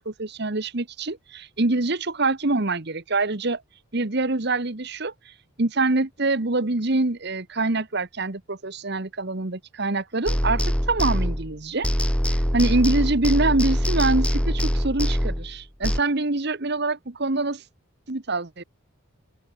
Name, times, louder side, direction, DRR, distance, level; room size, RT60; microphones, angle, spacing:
voice 1, 0.0-3.6 3.9-5.1 5.6-11.9 12.5-17.6 18.1-18.6, right 2 dB, 50° right, 1.3 m, -25 dB
sound 1, 10.3-11.6 11.8-16.0, equal, 5° left, 1.6 m, -23 dB
open air
head